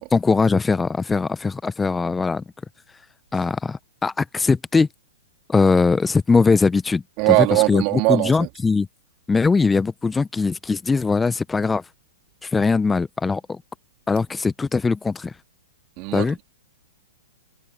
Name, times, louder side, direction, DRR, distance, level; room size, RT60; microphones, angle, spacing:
voice 1, 0.1-2.4 3.3-4.9 5.5-7.0 7.7-7.8 8.1-8.9 9.3-11.8 12.4-13.6 14.1-15.3 16.1-16.4, left 4 dB, 10° left, 0.7 m, -20 dB
voice 2, 7.2-8.5 16.0-16.4, right 26 dB, 40° right, 2.3 m, -20 dB
hypercardioid pair, 120°, 0 cm